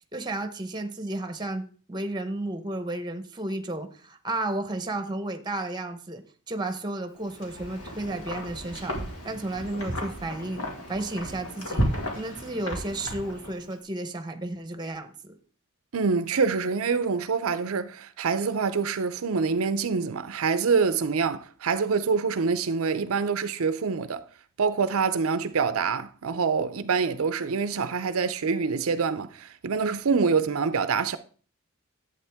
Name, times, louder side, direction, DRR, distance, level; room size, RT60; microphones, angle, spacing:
voice 1, 0.1-9.0 9.2-10.6 10.9-11.8 12.1-15.3, right 2 dB, 20° right, 0.9 m, -33 dB
Wind, 7.2-13.7, equal, 85° left, 2.4 m, -33 dB
voice 2, 15.9-24.2 24.6-31.2, right 5 dB, 75° right, 0.5 m, -26 dB
11.0 x 8.1 x 3.5 m
head